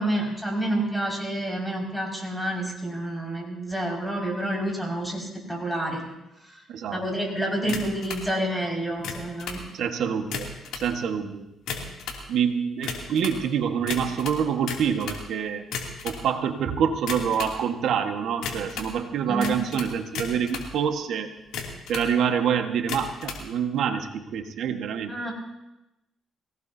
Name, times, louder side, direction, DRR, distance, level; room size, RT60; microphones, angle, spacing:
voice 1, 0.0-6.0 6.5-6.6 6.9-9.6 19.3-19.6 25.1-25.3, right 1 dB, ahead, -1 dB, 5.7 m, -29 dB
voice 2, 6.7-7.0 7.6-7.8 9.7-10.5 10.7-11.4 12.3-15.6 16.0-21.3 21.9-25.1, right 7 dB, 75° right, 6 dB, 1.5 m, -26 dB
sound 1, 7.7-8.3 8.9-9.6 10.2-10.9 11.5-12.2 12.8-13.4 13.9-15.2 15.6-16.2 17.0-17.6 18.4-18.9 19.4-20.7 21.4-22.1 22.8-23.4, left 5 dB, 85° left, 2.8 m, -34 dB
23.5 x 17.5 x 2.8 m, 0.91 s
cardioid pair, 90°, 0 cm